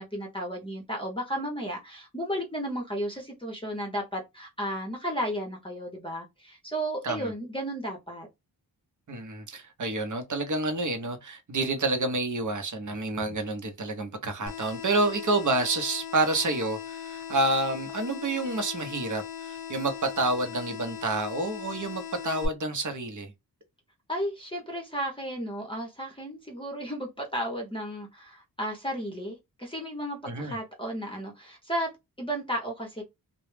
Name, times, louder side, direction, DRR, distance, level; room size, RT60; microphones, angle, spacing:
voice 1, 0.0-8.3 24.1-33.0, equal, 15° left, 0.6 m, -34 dB
voice 2, 9.1-23.3 30.3-30.6, right 2 dB, 50° right, 0.7 m, -29 dB
sound 1, 14.5-22.5, left 9 dB, 65° left, 0.6 m, -39 dB
2.2 x 2.0 x 3.1 m
wide cardioid pair, 100°, 39 cm